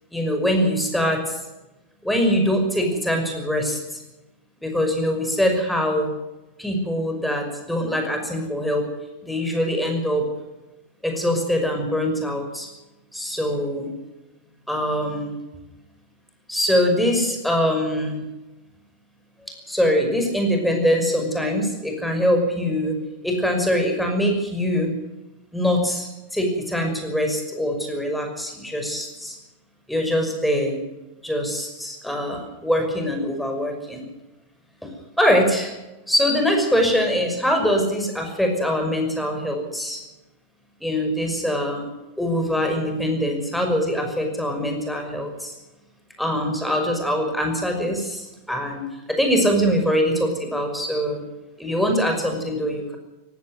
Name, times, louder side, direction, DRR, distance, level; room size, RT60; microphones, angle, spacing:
voice 1, 0.1-1.4 2.0-4.0 4.6-6.1 6.6-8.9 9.2-10.3 11.0-12.7 13.1-13.9 14.7-15.4 16.5-18.3 19.7-24.9 25.5-29.4 29.9-30.8 31.2-34.0 34.8-34.9 35.2-35.8 36.1-40.0 40.8-41.9 42.2-45.5 46.2-51.3 51.6-53.0, equal, ahead, 3 dB, 5.7 m, -23 dB
18.0 x 16.0 x 9.5 m, 1.0 s
figure-of-eight pair, 90°, 0 cm